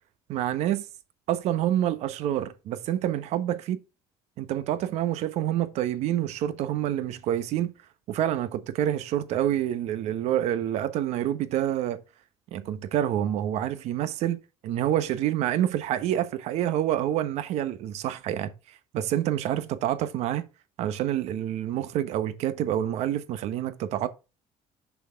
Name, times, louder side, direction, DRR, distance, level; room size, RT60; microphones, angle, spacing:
voice 1, 0.3-0.9 1.3-3.8 4.4-7.7 8.1-12.0 12.5-20.5 20.8-24.1, right 11 dB, 65° right, 0.9 m, -27 dB
6.2 x 5.8 x 3.5 m
cardioid pair, 165°, 12 cm